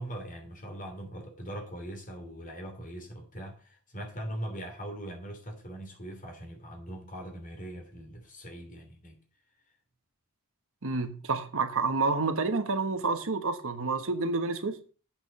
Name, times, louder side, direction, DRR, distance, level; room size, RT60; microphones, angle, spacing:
voice 1, 0.0-9.2, right 1 dB, 35° left, 3.0 m, -41 dB
voice 2, 10.8-14.8, right 3 dB, 65° right, 1.2 m, -29 dB
8.7 x 5.9 x 6.9 m
head